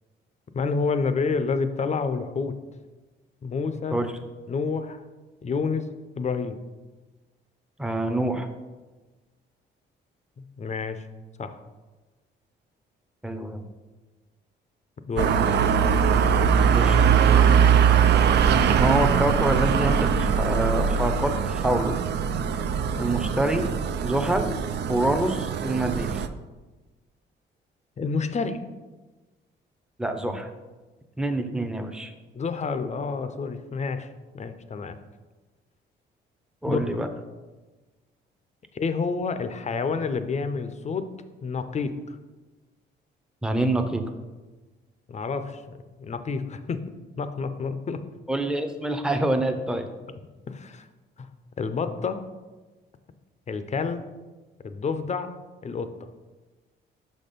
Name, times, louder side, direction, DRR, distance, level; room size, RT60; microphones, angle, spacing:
voice 1, 0.5-2.6 3.4-4.0 4.5-5.0 5.4-5.9 6.2-6.6 10.6-11.0 11.4-11.6 15.1-15.3 28.0-28.6 32.3-34.1 34.3-35.0 36.6-36.8 38.7-41.1 41.4-41.9 45.1-46.8 47.2-48.0 50.5-50.9 51.2-51.3 51.6-52.2 53.5-54.0 54.6-55.3 55.6-55.9, left 4 dB, 35° left, 10 dB, 0.6 m, -28 dB
voice 2, 7.8-8.5 13.2-13.6 16.7-17.1 18.8-21.9 23.0-23.7 24.0-24.6 24.9-26.2 30.0-30.5 31.2-32.1 36.6-37.1 43.4-44.1 48.3-49.9, right 1 dB, 5° right, 6 dB, 0.6 m, -26 dB
sound 1, 15.2-26.3, right 7 dB, 60° right, 0.4 m, -21 dB
5.9 x 4.3 x 5.2 m, 1.2 s
cardioid pair, 90°, 20 cm